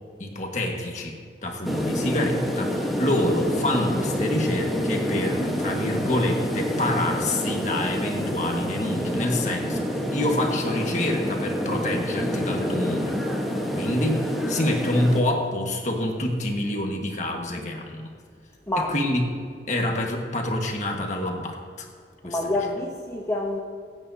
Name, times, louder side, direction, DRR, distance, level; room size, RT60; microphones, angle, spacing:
voice 1, 0.2-13.2 13.7-18.1 18.8-19.2 19.7-21.9 22.2-22.4, left 1 dB, 40° left, 1.6 m, -27 dB
sound 1, 1.6-15.2, equal, ahead, 1.2 m, -27 dB
voice 2, 18.7-19.0 22.2-23.6, left 1 dB, 15° left, 0.8 m, -27 dB
25.5 x 8.9 x 2.8 m
head